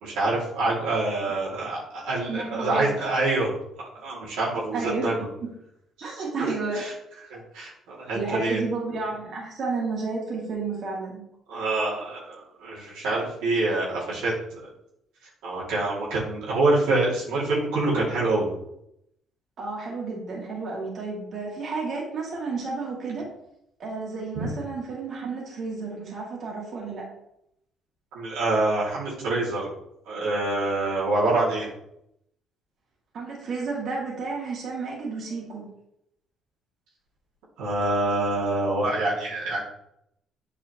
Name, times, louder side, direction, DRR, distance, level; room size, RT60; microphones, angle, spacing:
voice 1, 0.0-3.5 4.0-5.1 6.0-6.2 6.7-6.9 7.3-8.6 11.5-14.3 15.4-18.5 24.4-24.5 28.1-29.7 30.1-31.7 37.6-39.6, right 2 dB, 90° right, -6 dB, 2.4 m, -26 dB
voice 2, 2.3-2.9 4.7-5.5 6.0-6.8 8.1-11.2 19.6-23.3 23.8-27.0 33.1-35.7, right 3 dB, 60° right, -3 dB, 2.4 m, -31 dB
8.2 x 4.8 x 3.0 m, 0.78 s
cardioid pair, 80°, 0 cm